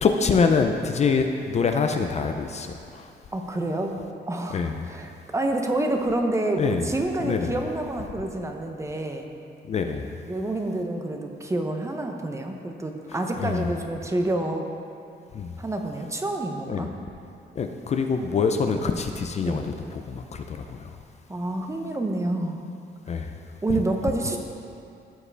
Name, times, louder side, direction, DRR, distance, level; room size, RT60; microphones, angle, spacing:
voice 1, 0.0-3.0 4.5-4.9 6.6-6.9 7.2-7.6 9.7-10.1 13.4-13.7 15.3-15.5 16.7-16.9 17.6-19.6 19.9-20.8 23.1-23.3 23.7-23.8, left 5 dB, 40° left, 5 dB, 0.4 m, -25 dB
voice 2, 3.3-9.3 10.3-14.7 15.6-16.9 19.4-19.6 21.3-22.6 23.6-24.4, right 2 dB, 15° right, 3 dB, 0.6 m, -28 dB
14.0 x 4.8 x 3.3 m, 2.5 s
wide cardioid pair, 150°, 18 cm